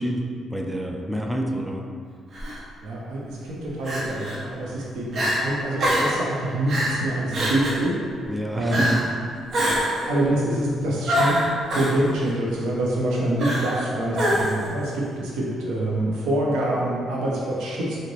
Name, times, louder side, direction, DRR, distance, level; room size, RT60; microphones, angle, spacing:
voice 1, 0.0-1.9 8.2-9.1, equal, 5° right, 1 dB, 0.4 m, -28 dB
Crying sobbing, 2.3-2.6 3.8-4.4 4.8-4.9 5.1-5.4 5.8-6.2 6.7-7.0 7.3-7.8 8.7-9.1 9.5-10.1 11.1-11.9 13.4-13.8 14.1-14.7, equal, 55° right, 0.8 m, -24 dB
voice 2, 2.8-8.0 8.5-8.9 9.9-11.4 11.7-18.0, right 1 dB, 90° right, -4 dB, 0.7 m, -26 dB
3.9 x 2.1 x 3.1 m, 2.1 s
cardioid pair, 90°, 0 cm